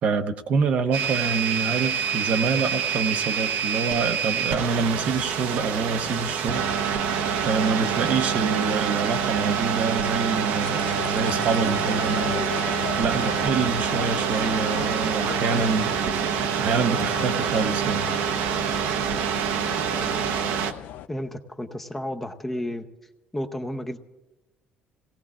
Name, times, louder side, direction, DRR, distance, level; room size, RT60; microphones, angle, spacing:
voice 1, 0.0-7.1 7.4-12.4 13.0-15.9 16.3-18.1, right 5 dB, 50° right, 8 dB, 0.7 m, -26 dB
sound 1, 0.9-20.7, right 7 dB, 90° right, 0.9 m, -26 dB
sound 2, 10.6-21.1, left 11 dB, 70° left, 0.4 m, -37 dB
voice 2, 21.1-22.9 23.3-24.0, left 1 dB, 10° left, 5 dB, 0.7 m, -32 dB
28.5 x 17.5 x 2.4 m, 1.0 s
cardioid pair, 150°, 3 cm